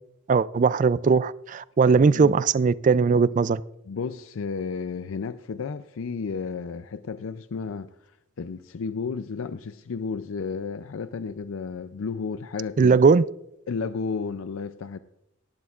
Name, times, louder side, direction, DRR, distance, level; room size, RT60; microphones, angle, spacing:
voice 1, 0.3-3.6 12.8-13.2, right 5 dB, 40° right, 0.3 m, -19 dB
voice 2, 1.8-2.4 3.9-13.0 13.7-15.0, left 5 dB, 75° left, 0.4 m, -33 dB
18.0 x 12.0 x 2.4 m
head